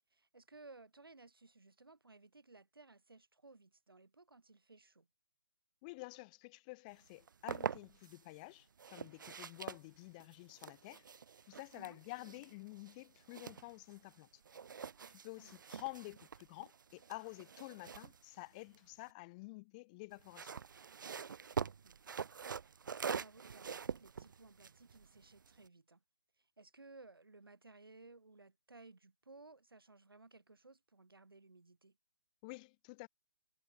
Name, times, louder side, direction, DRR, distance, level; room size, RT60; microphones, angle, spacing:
voice 1, 0.1-5.1 11.7-12.0 15.4-15.6 21.8-22.3 22.6-26.0 26.4-32.0, right 3 dB, 85° right, 1.4 m, -59 dB
voice 2, 5.8-11.0 11.5-14.3 15.1-20.5 32.4-33.1, left 25 dB, 20° left, 0.5 m, -50 dB
sound 1, 7.1-8.2 8.8-14.2 14.5-19.1 20.1-25.7, right 6 dB, 60° right, 0.8 m, -45 dB
figure-of-eight pair, 140°, 12 cm